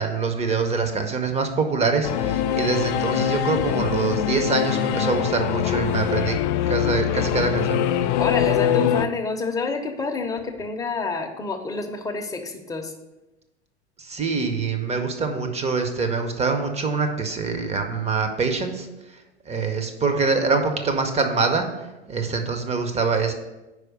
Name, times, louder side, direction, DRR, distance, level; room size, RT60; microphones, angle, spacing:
voice 1, 0.0-6.4 6.7-7.8 14.0-18.9 19.5-21.7 22.1-23.3, right 4 dB, 20° right, 5 dB, 0.8 m, -24 dB
Singing / Musical instrument, 2.0-9.1, left 10 dB, 45° left, 0.4 m, -23 dB
voice 2, 8.2-12.9, left 4 dB, 10° left, 3 dB, 0.8 m, -28 dB
4.8 x 4.7 x 6.2 m, 1.0 s
figure-of-eight pair, 90°, 34 cm